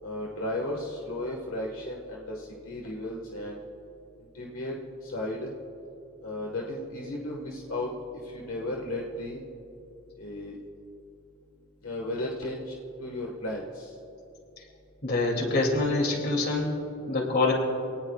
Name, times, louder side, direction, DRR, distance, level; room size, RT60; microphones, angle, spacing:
voice 1, 0.0-3.6 4.3-4.7 5.0-5.5 6.2-7.9 8.2-9.4 10.2-10.6 11.8-12.7 13.0-13.9, left 1 dB, 70° left, -1 dB, 1.6 m, -34 dB
voice 2, 15.0-16.7 17.1-17.5, left 3 dB, 50° left, 1 dB, 2.7 m, -25 dB
25.5 x 18.5 x 2.4 m, 2.9 s
head